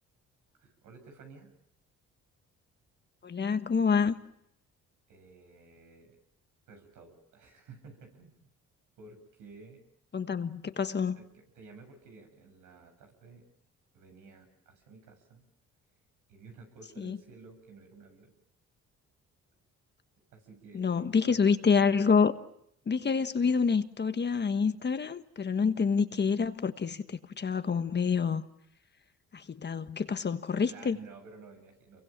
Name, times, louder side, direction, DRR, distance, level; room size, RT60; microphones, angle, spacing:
voice 1, 0.5-1.5 5.1-6.2 6.7-8.5 9.0-9.8 11.1-13.4 13.9-15.4 16.3-18.3 20.3-21.5 30.7-32.0, right 4 dB, 85° right, 8.0 m, -53 dB
voice 2, 3.2-4.2 10.1-11.2 17.0-17.2 20.7-22.3 22.9-28.4 29.3-31.0, left 5 dB, 35° left, 1.4 m, -27 dB
29.0 x 23.5 x 7.4 m
cardioid pair, 90°, 30 cm